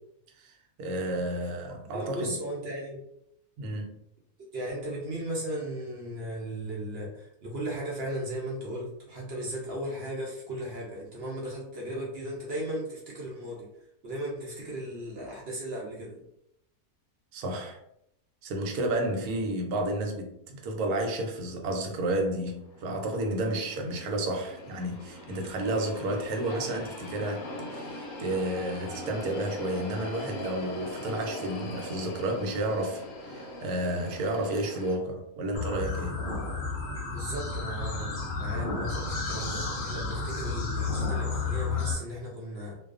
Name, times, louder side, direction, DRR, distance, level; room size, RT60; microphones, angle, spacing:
voice 1, 0.8-2.4 3.6-3.9 17.3-17.8 18.4-36.2, right 1 dB, 85° right, 1.1 m, -31 dB
voice 2, 1.6-3.0 4.5-13.7 14.0-16.2 37.1-42.8, right 1 dB, 60° right, 0.7 m, -36 dB
sound 1, 22.3-35.0, left 1 dB, 70° left, 0.9 m, -41 dB
sound 2, 35.5-41.9, left 4 dB, 90° left, 0.4 m, -32 dB
2.4 x 2.3 x 2.3 m
omnidirectional pair, 1.6 m